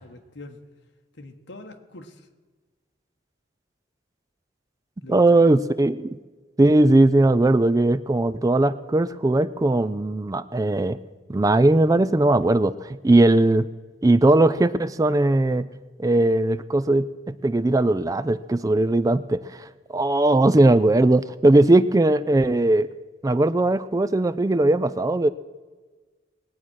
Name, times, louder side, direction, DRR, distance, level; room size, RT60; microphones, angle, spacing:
voice 1, 0.0-0.6 1.1-2.3 5.0-5.4, left 2 dB, 65° left, 4 dB, 1.3 m, -43 dB
voice 2, 5.1-6.1 6.6-11.0 11.3-13.7 14.0-15.7 16.0-19.5 19.9-22.9 23.2-25.3, right 2 dB, 20° right, 14 dB, 0.3 m, -19 dB
20.0 x 8.7 x 6.3 m, 1.4 s
head